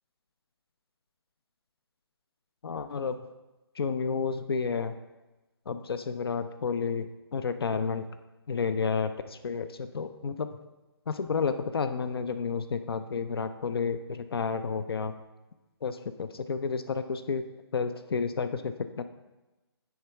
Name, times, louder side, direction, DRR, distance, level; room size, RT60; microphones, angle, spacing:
voice 1, 2.6-3.2 3.8-4.9 5.7-8.1 8.5-10.5 11.1-15.1 15.8-17.4 17.7-19.0, left 5 dB, 65° left, 10 dB, 0.5 m, -31 dB
9.3 x 3.5 x 5.7 m, 1.1 s
figure-of-eight pair, 145°, 14 cm